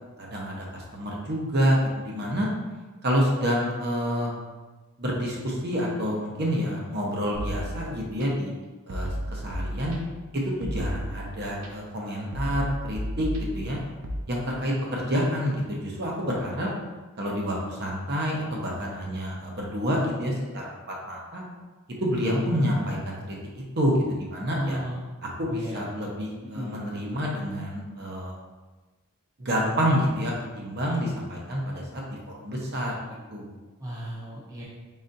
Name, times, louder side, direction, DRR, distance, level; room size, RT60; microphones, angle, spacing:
voice 1, 0.2-2.5 3.0-4.3 5.0-8.5 8.9-9.9 10.3-13.8 14.3-16.7 17.2-20.7 21.1-21.4 22.0-23.4 23.8-24.8 25.2-28.3 29.4-33.0 33.3-33.5, equal, 50° right, -2 dB, 0.8 m, -28 dB
sound 1, 7.3-8.3 8.9-10.2 10.6-11.7 12.3-14.2, equal, 75° right, 0.6 m, -33 dB
voice 2, 24.5-25.0 25.5-25.9 26.5-26.8 33.8-34.6, right 1 dB, 15° right, -6 dB, 0.6 m, -34 dB
4.1 x 4.0 x 2.6 m, 1.2 s
head